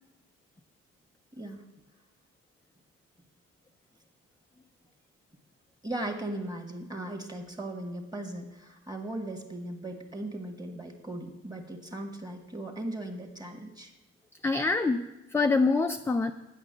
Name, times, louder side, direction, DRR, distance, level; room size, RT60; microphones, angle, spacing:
voice 1, 1.3-1.6 5.8-13.9, right 1 dB, 15° right, 4 dB, 1.5 m, -38 dB
voice 2, 14.4-16.3, left 3 dB, 10° left, 6 dB, 0.3 m, -25 dB
8.3 x 6.0 x 8.1 m, 1.0 s
cardioid pair, 90°, 30 cm